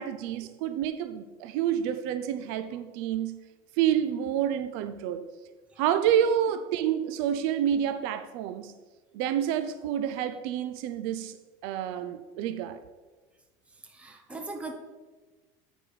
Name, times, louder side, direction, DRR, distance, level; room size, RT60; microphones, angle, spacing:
voice 1, 0.0-3.4 3.8-5.3 5.8-8.7 9.1-11.4 11.6-12.8, right 10 dB, 65° right, 0.5 m, -28 dB
voice 2, 13.8-14.7, right 3 dB, 10° right, 0.9 m, -39 dB
8.8 x 4.9 x 4.9 m
cardioid pair, 150°, 11 cm